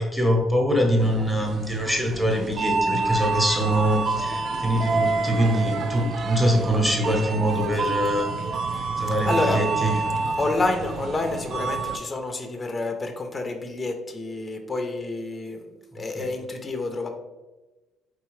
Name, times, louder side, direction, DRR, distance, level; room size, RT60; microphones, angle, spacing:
voice 1, 0.0-8.3 9.0-10.0 16.1-16.3, equal, 5° right, 0 dB, 0.9 m, -23 dB
sound 1, 1.0-12.0, right 4 dB, 45° right, 0.3 m, -28 dB
voice 2, 9.2-9.6 10.4-15.7 15.9-17.1, left 3 dB, 20° left, 5 dB, 0.5 m, -28 dB
4.6 x 3.6 x 3.1 m, 1.1 s
cardioid pair, 145°, 0 cm